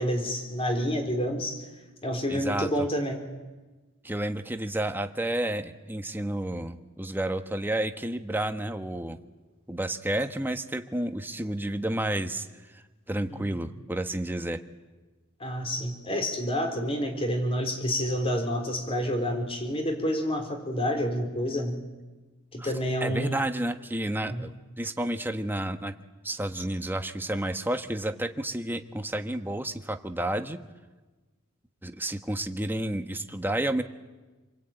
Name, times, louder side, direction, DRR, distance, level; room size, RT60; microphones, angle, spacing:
voice 1, 0.0-1.7 2.0-3.2 13.3-13.6 15.4-21.8 22.5-23.4 24.3-24.5, equal, 25° left, 4 dB, 3.8 m, -29 dB
voice 2, 2.3-2.7 4.0-9.2 9.7-12.5 12.7-14.6 22.6-22.7 23.0-25.9 26.2-30.6 31.8-33.8, right 1 dB, 10° right, 7 dB, 1.2 m, -31 dB
28.5 x 23.0 x 9.0 m, 1.2 s
head